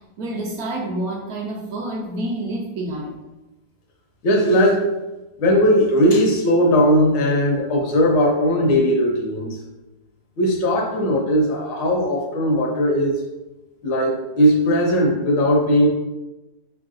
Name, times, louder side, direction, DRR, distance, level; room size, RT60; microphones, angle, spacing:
voice 1, 0.2-3.2, right 1 dB, 70° right, -1 dB, 0.9 m, -28 dB
voice 2, 4.2-4.9 5.4-9.6 10.4-13.2 13.8-15.9, equal, 80° left, 0 dB, 1.6 m, -18 dB
4.5 x 3.8 x 2.5 m, 1.0 s
omnidirectional pair, 2.0 m